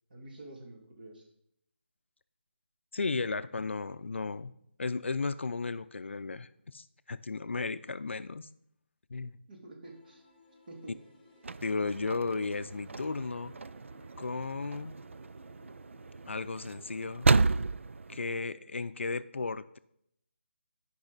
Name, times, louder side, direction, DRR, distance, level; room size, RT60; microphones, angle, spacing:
voice 1, 0.1-1.3 9.5-10.2 10.7-11.0 18.5-18.7, right 2 dB, 45° right, 1 dB, 2.3 m, -48 dB
voice 2, 2.9-4.5 4.8-8.5 9.1-9.4 11.6-13.5 14.2-14.9 16.3-17.3 18.1-19.8, left 4 dB, 75° left, 14 dB, 0.5 m, -35 dB
sound 1, 9.8-16.4, left 3 dB, 10° left, 1.2 m, -60 dB
sound 2, 11.4-18.4, right 4 dB, 85° right, 0.3 m, -32 dB
12.0 x 5.4 x 4.0 m, 0.74 s
figure-of-eight pair, 165°, 7 cm